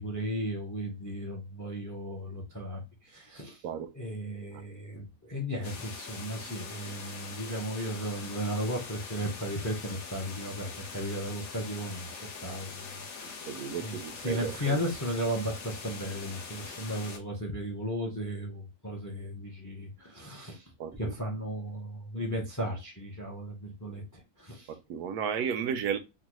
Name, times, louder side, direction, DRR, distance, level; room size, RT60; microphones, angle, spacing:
voice 1, 0.0-3.6 3.9-12.1 12.4-13.5 13.8-20.6 21.0-24.7, equal, 20° left, 0.5 m, -35 dB
sound 1, 5.6-17.2, left 5 dB, 65° left, 1.2 m, -43 dB
voice 2, 13.5-14.8 20.8-21.1 24.7-26.0, right 7 dB, 90° right, 1.1 m, -33 dB
3.8 x 2.2 x 2.9 m
omnidirectional pair, 1.6 m